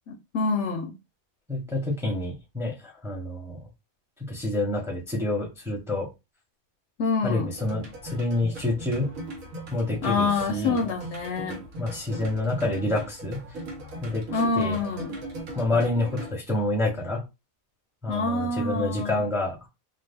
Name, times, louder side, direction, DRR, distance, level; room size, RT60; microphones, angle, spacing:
voice 1, 0.1-0.9 7.0-7.5 10.0-11.6 14.3-15.2 18.1-19.2, left 4 dB, 65° left, 0.8 m, -26 dB
voice 2, 1.5-3.6 4.2-6.1 7.2-9.1 9.7-10.8 11.8-13.4 14.0-14.3 14.6-14.8 15.6-17.2 18.0-19.6, left 2 dB, ahead, 0.7 m, -28 dB
sound 1, 7.6-16.3, right 1 dB, 85° right, 1.4 m, -39 dB
2.6 x 2.4 x 3.4 m
omnidirectional pair, 1.4 m